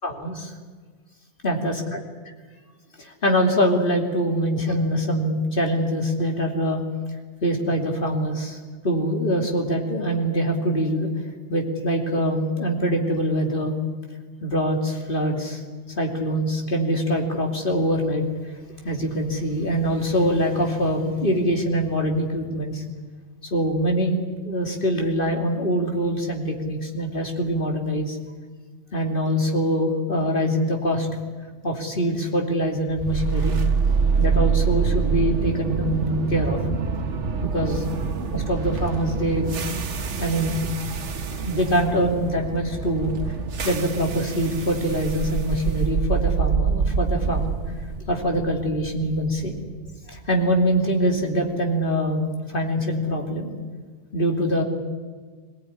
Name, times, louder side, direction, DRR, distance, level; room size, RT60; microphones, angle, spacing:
voice 1, 0.0-0.5 1.4-2.0 3.0-6.8 7.4-8.6 8.8-11.1 11.5-13.7 14.4-15.6 16.0-18.2 18.8-22.8 23.5-24.2 24.4-28.2 28.9-31.1 31.6-33.5 34.2-36.6 37.4-37.9 38.3-39.6 40.2-40.6 41.4-43.1 43.6-47.5 48.1-49.5 50.1-53.5 54.1-54.6, equal, 50° left, 2 dB, 3.1 m, -24 dB
sound 1, 33.0-51.1, right 5 dB, 85° right, 1.5 m, -26 dB
22.5 x 18.5 x 9.9 m, 1.5 s
omnidirectional pair, 1.2 m